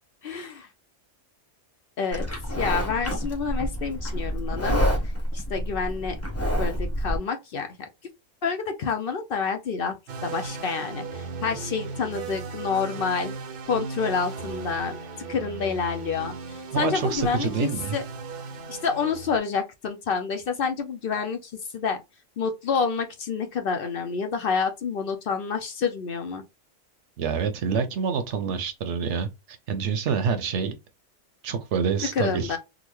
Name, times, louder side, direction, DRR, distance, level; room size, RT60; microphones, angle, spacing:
voice 1, 0.2-0.7 2.0-2.3 2.6-4.8 5.3-6.2 6.6-7.7 8.4-10.0 10.2-13.3 13.7-14.9 15.3-18.0 18.7-22.0 22.4-26.4 32.1-32.6, left 5 dB, 55° left, 0.7 m, -28 dB
Livestock farm animals working animals, 2.1-7.2, equal, 15° left, 1.0 m, -28 dB
sound 1, 10.1-19.4, right 4 dB, 55° right, 0.7 m, -37 dB
voice 2, 16.7-18.0 27.2-30.7 31.4-32.6, right 6 dB, 75° right, 1.0 m, -27 dB
3.8 x 2.1 x 3.0 m
omnidirectional pair, 1.3 m